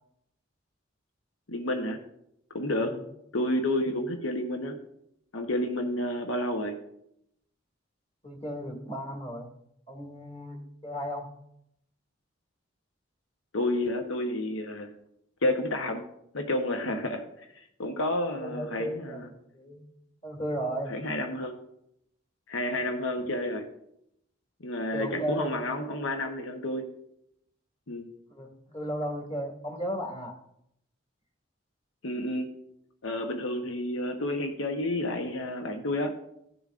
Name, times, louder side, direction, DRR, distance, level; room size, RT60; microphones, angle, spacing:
voice 1, 1.5-2.0 2.5-3.0 3.3-4.8 5.3-6.8 13.5-14.9 15.4-16.0 16.3-19.3 20.9-21.6 22.5-23.7 24.6-26.9 27.9-28.1 32.0-32.5 33.0-36.2, left 1 dB, 85° left, 4 dB, 1.0 m, -30 dB
voice 2, 8.2-9.5 9.9-11.3 18.4-19.9 20.2-20.9 24.9-25.6 28.3-30.4, equal, 30° left, 1 dB, 2.0 m, -35 dB
16.0 x 7.0 x 2.5 m, 0.76 s
head